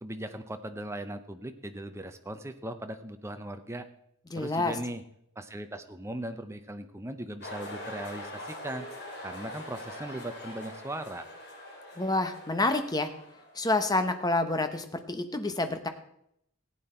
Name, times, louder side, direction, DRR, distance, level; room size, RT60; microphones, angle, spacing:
voice 1, 0.0-3.9 4.4-5.0 5.4-8.9 9.2-11.3, right 1 dB, 15° right, 8 dB, 0.7 m, -38 dB
voice 2, 4.3-4.7 12.0-13.1 13.5-15.9, left 2 dB, 20° left, 8 dB, 0.9 m, -28 dB
sound 1, 7.4-13.7, left 1 dB, 50° left, 3.0 m, -43 dB
15.0 x 8.8 x 4.4 m, 0.75 s
head